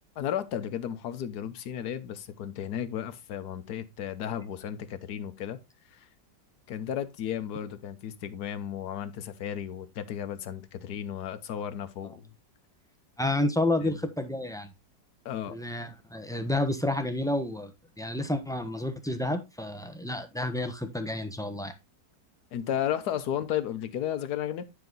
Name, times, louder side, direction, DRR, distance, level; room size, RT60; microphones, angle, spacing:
voice 1, 0.2-5.6 5.9-6.1 6.7-12.3 13.8-14.0 15.2-15.6 22.5-24.6, left 10 dB, 65° left, 1.3 m, -34 dB
voice 2, 13.2-14.7 15.5-17.7 18.0-21.7, left 1 dB, 5° left, 0.5 m, -30 dB
9.8 x 4.8 x 3.9 m
omnidirectional pair, 1.9 m